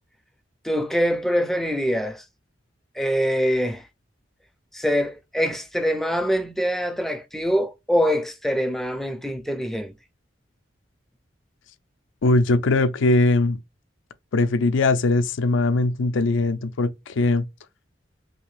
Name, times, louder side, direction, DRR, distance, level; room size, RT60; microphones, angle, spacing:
voice 1, 0.6-2.2 3.0-3.9 4.7-9.9, equal, ahead, 0.4 m, -24 dB
voice 2, 12.2-13.6 14.3-17.4, left 2 dB, 80° left, 0.4 m, -20 dB
3.2 x 2.8 x 3.1 m
head